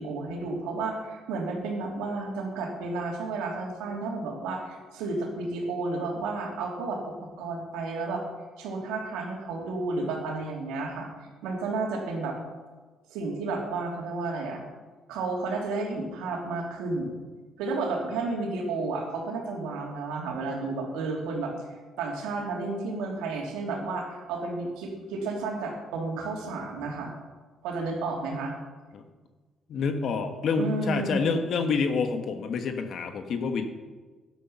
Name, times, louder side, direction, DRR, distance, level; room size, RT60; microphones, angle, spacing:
voice 1, 0.0-7.0 7.4-8.2 8.6-11.1 11.4-12.4 13.1-14.6 15.1-17.2 17.6-21.5 22.0-27.1 27.6-28.5 30.6-31.4, right 3 dB, 85° right, 0 dB, 2.9 m, -32 dB
voice 2, 29.7-33.6, left 5 dB, 65° left, 7 dB, 1.3 m, -28 dB
11.5 x 11.0 x 5.7 m, 1.3 s
supercardioid pair, 70°, 0 cm